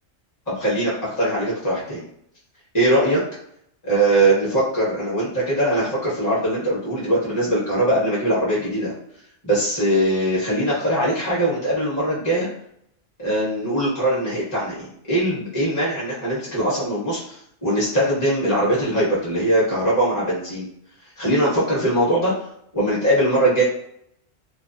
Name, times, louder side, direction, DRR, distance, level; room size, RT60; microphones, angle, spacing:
voice 1, 0.5-2.0 2.7-3.2 3.8-8.9 9.4-12.5 13.2-20.6 21.2-22.3 22.7-23.6, right 1 dB, 20° left, -8 dB, 0.8 m, -21 dB
2.2 x 2.2 x 2.5 m, 0.72 s
omnidirectional pair, 1.3 m